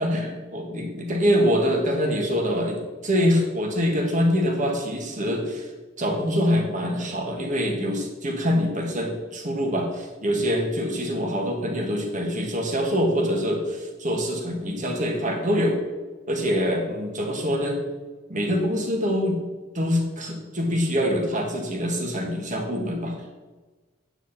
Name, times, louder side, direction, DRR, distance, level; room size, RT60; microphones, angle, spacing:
voice 1, 0.0-5.7 6.0-15.8 16.3-17.8 18.3-19.4 19.7-23.2, equal, 35° right, 1 dB, 1.8 m, -24 dB
9.9 x 9.0 x 4.3 m, 1.3 s
head